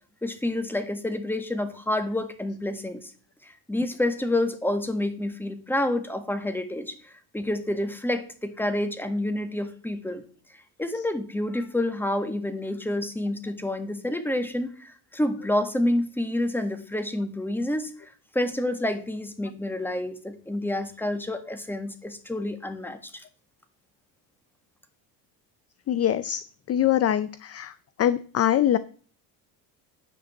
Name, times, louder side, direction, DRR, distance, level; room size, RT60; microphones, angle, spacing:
voice 1, 0.2-3.1 3.4-10.2 10.8-23.2, left 1 dB, 5° left, 8 dB, 1.6 m, -28 dB
voice 2, 25.9-26.4 26.7-27.7 28.0-28.8, left 11 dB, 35° left, 15 dB, 0.6 m, -23 dB
9.8 x 5.1 x 7.2 m, 0.42 s
cardioid pair, 110°, 46 cm